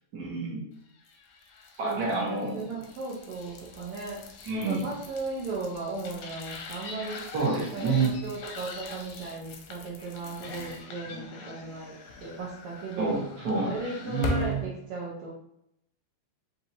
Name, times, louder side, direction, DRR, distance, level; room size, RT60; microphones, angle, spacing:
voice 1, 0.1-0.7 1.8-2.6 4.4-4.8 7.3-8.1 13.0-13.7 14.0-14.6, right 3 dB, 55° right, -4 dB, 1.0 m, -28 dB
sound 1, 1.0-14.6, left 3 dB, 80° left, 1.6 m, -41 dB
voice 2, 1.8-4.2 4.5-7.3 7.7-13.2 13.6-15.3, right 3 dB, 90° right, -5 dB, 1.2 m, -36 dB
5.8 x 2.7 x 2.7 m, 0.75 s
omnidirectional pair, 3.6 m